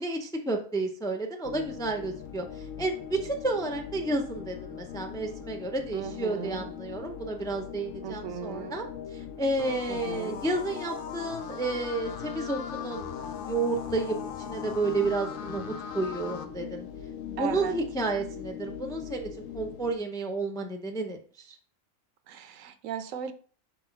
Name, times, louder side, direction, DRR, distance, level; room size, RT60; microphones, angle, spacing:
voice 1, 0.0-13.1 13.4-16.9 17.3-21.2 21.4-21.6, right 2 dB, 5° left, 3 dB, 0.4 m, -31 dB
sound 1, 1.4-20.0, left 8 dB, 75° left, 1.0 m, -41 dB
voice 2, 5.9-6.7 8.0-8.8 9.9-10.4 17.4-17.7 22.3-23.3, right 8 dB, 75° right, 9 dB, 1.1 m, -37 dB
sound 2, 9.6-16.4, left 6 dB, 55° left, 0.6 m, -41 dB
4.3 x 4.2 x 5.7 m, 0.43 s
omnidirectional pair, 1.4 m